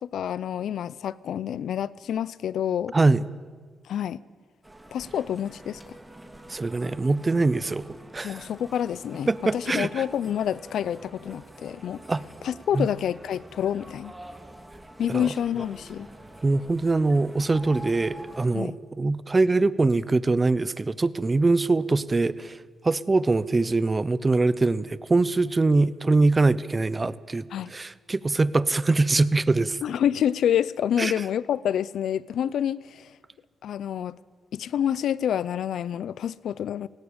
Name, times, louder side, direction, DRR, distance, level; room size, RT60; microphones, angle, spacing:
voice 1, 0.0-2.9 3.9-4.2 4.9-5.8 8.2-12.0 12.4-14.1 15.0-16.1 18.5-18.8 27.5-27.7 29.8-33.1 33.6-34.2 34.5-36.9, left 9 dB, 75° left, 0.5 m, -28 dB
voice 2, 2.9-3.2 6.5-7.8 8.1-8.4 9.3-10.0 12.1-12.2 12.7-12.9 15.1-15.3 16.4-22.6 22.8-27.4 27.7-29.8 31.0-31.1, right 3 dB, 30° right, 0.7 m, -23 dB
sound 1, 4.6-18.5, right 1 dB, 15° right, 2.5 m, -46 dB
18.0 x 16.5 x 8.7 m
cardioid pair, 70°, 0 cm